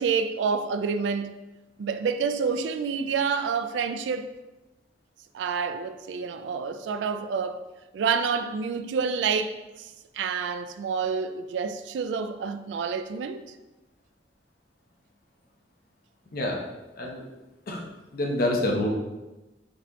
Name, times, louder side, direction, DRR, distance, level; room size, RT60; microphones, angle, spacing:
voice 1, 0.0-1.4 1.8-4.3 5.3-7.6 7.9-13.4, right 5 dB, 90° right, 0.3 m, -28 dB
voice 2, 16.3-16.6 17.0-17.2 17.7-18.9, left 1 dB, 55° left, 0.7 m, -27 dB
3.9 x 2.8 x 3.5 m
head